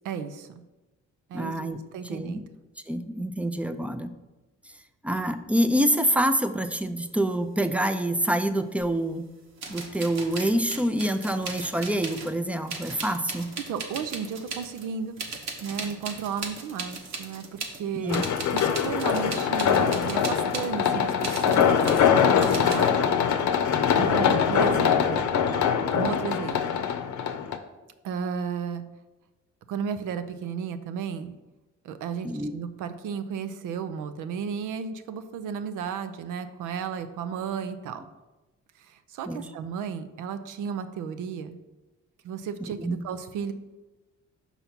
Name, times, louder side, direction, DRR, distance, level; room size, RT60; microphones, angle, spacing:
voice 1, 0.0-0.5 1.3-1.5 1.9-2.4 13.6-15.2 15.6-18.2 18.5-23.1 24.0-25.3 25.9-26.6 28.0-28.8 29.7-31.3 31.8-38.0 38.8-41.6 42.2-43.5, right 7 dB, 85° right, 11 dB, 0.6 m, -33 dB
voice 2, 1.3-1.8 2.0-2.4 2.9-4.1 5.0-9.2 9.7-13.5 18.0-18.2 32.2-32.5 39.3-39.5 42.8-43.0, right 1 dB, 5° right, 9 dB, 0.4 m, -26 dB
sound 1, 8.8-8.9 9.6-12.4 12.7-14.9 15.2-17.8 18.1-20.7 21.2-22.1 22.4-22.9, right 4 dB, 65° right, 1.2 m, -38 dB
sound 2, 18.1-27.6, left 7 dB, 70° left, 0.7 m, -23 dB
5.6 x 4.1 x 5.9 m, 1.1 s
cardioid pair, 90°, 30 cm